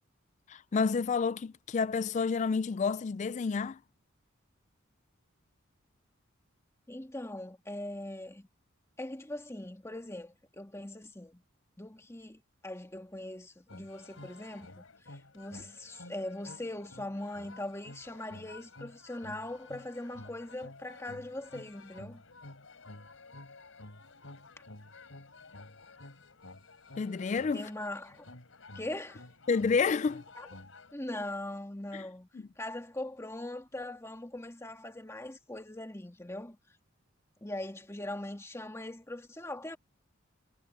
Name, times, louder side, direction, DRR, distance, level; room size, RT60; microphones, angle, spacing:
voice 1, 0.5-3.8 27.0-27.7 29.5-30.2 31.9-32.0, left 5 dB, 35° left, 0.3 m, -29 dB
voice 2, 6.9-8.5 9.0-11.4 11.8-22.2 27.5-28.2 28.7-29.2 30.4-30.5 30.9-32.3 32.6-36.6 37.4-39.8, left 1 dB, 15° left, 1.9 m, -41 dB
sound 1, 13.7-30.9, left 2 dB, 90° left, 3.7 m, -51 dB
head